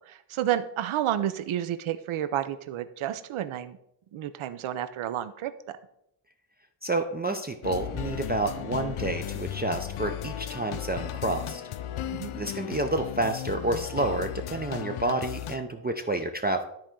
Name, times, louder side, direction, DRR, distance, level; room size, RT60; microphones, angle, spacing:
voice 1, 0.1-3.8 4.1-5.5 12.1-12.3, right 11 dB, 80° right, 11 dB, 0.7 m, -30 dB
voice 2, 6.8-11.6 12.3-16.6, right 2 dB, 25° right, 5 dB, 0.3 m, -29 dB
sound 1, 7.6-15.6, left 11 dB, 85° left, 0.6 m, -35 dB
12.5 x 4.4 x 3.7 m, 0.76 s
wide cardioid pair, 180°, 48 cm